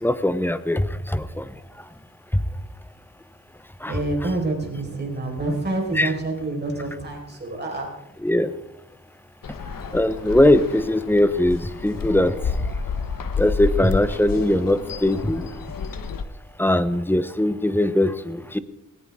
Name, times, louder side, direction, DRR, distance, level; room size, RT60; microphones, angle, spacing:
voice 1, 0.0-1.5 3.8-4.0 5.9-6.1 8.2-8.5 9.9-12.7 13.4-15.5 16.6-18.6, left 1 dB, 5° left, 12 dB, 0.8 m, -21 dB
voice 2, 3.9-7.9, right 2 dB, 30° right, 0 dB, 4.8 m, -27 dB
sound 1, 9.4-16.2, left 5 dB, 75° left, 1.1 m, -30 dB
20.0 x 18.0 x 3.7 m, 0.84 s
wide cardioid pair, 135°, 34 cm